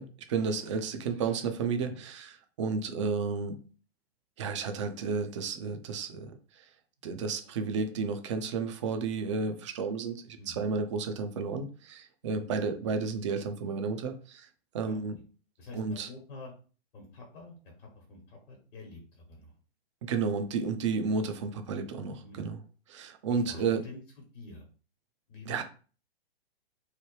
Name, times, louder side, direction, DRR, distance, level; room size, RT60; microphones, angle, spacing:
voice 1, 0.0-2.3 2.6-3.6 4.4-6.6 7.0-14.5 14.7-15.1 15.7-16.1 20.0-22.6 22.9-23.8 25.5-25.6, right 5 dB, 30° right, 7 dB, 0.4 m, -32 dB
voice 2, 15.6-16.5 16.9-19.5 22.2-22.5 23.3-24.0 24.3-24.7 25.3-25.6, left 3 dB, 60° left, 0 dB, 1.1 m, -47 dB
3.1 x 2.1 x 3.1 m, 0.38 s
figure-of-eight pair, 115°, 31 cm